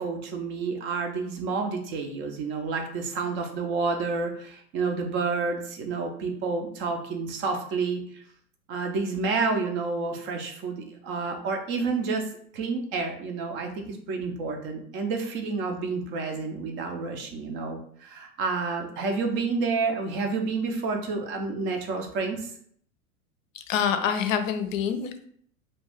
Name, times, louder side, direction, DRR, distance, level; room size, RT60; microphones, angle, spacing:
voice 1, 0.0-8.2 8.7-22.5, right 4 dB, 30° right, 3 dB, 0.4 m, -29 dB
voice 2, 23.7-25.3, left 7 dB, 60° left, 8 dB, 0.6 m, -26 dB
2.6 x 2.3 x 3.4 m, 0.63 s
hypercardioid pair, 105°, 45 cm